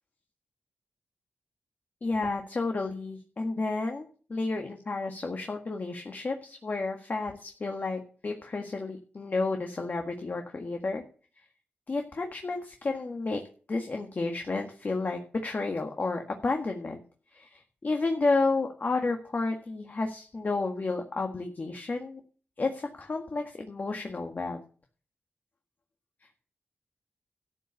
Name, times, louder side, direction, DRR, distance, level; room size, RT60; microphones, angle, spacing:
voice 1, 2.0-11.0 11.9-17.0 17.3-22.2 22.6-24.6, left 3 dB, 45° left, 4 dB, 1.8 m, -31 dB
13.0 x 6.8 x 7.1 m, 0.41 s
cardioid pair, 65°, 4 cm